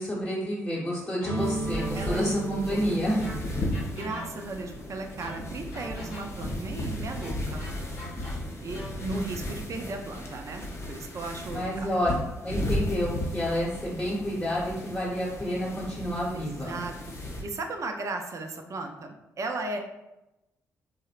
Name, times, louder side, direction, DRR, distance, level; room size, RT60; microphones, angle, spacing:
voice 1, 0.0-3.2 11.5-12.1 12.4-16.8, equal, 5° left, -7 dB, 0.9 m, -29 dB
sound 1, 1.2-2.6 3.2-4.7 5.2-6.6 7.2-9.1, left 1 dB, 75° left, 0.8 m, -43 dB
sound 2, 1.3-8.9, right 3 dB, 85° right, 0.6 m, -39 dB
sound 3, 1.4-17.4, left 1 dB, 40° left, 0.6 m, -35 dB
voice 2, 2.7-3.0 3.2-3.4 3.8-7.7 8.6-11.9 16.3-16.9 17.2-19.8, right 3 dB, 45° right, 4 dB, 0.4 m, -36 dB
2.7 x 2.0 x 2.4 m, 0.95 s
hypercardioid pair, 45°, 7 cm